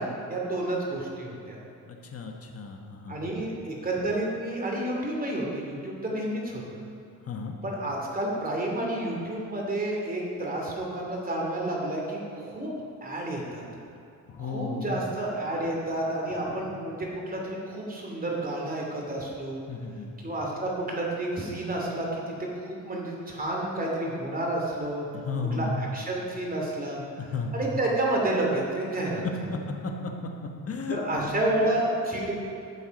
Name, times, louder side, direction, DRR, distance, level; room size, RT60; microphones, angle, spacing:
voice 1, 0.0-1.6 3.1-6.8 7.6-12.7 13.0-13.6 14.4-19.6 20.2-25.1 25.5-27.0 27.5-29.2 30.9-32.3, right 1 dB, 25° right, -2 dB, 2.7 m, -30 dB
voice 2, 1.8-3.5 7.2-7.5 14.3-15.0 16.7-16.8 19.7-20.1 25.2-25.7 27.2-27.6 29.8-31.4, left 4 dB, 45° left, 2 dB, 1.3 m, -34 dB
12.0 x 7.2 x 5.3 m, 2.6 s
cardioid pair, 110°, 34 cm